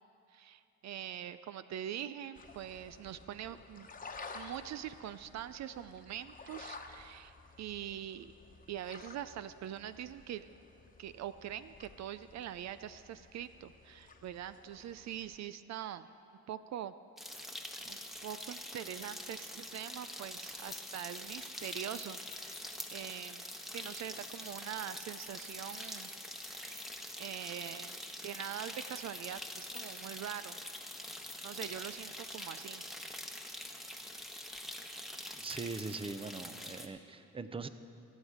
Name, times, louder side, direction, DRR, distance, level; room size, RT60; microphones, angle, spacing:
voice 1, 0.3-3.9 4.3-8.3 8.7-10.5 11.0-16.1 16.5-16.9 17.9-23.4 23.7-26.1 26.5-30.6 31.4-32.8, right 10 dB, 65° right, 13 dB, 0.5 m, -43 dB
sound 1, 2.4-15.4, left 4 dB, 30° left, 1.1 m, -53 dB
sound 2, 17.2-36.9, equal, ahead, 1.1 m, -45 dB
sound 3, 20.4-31.8, left 10 dB, 85° left, 1.6 m, -56 dB
voice 2, 35.4-37.7, right 4 dB, 20° right, 11 dB, 0.6 m, -41 dB
23.0 x 8.2 x 4.9 m, 2.7 s
cardioid pair, 90°, 30 cm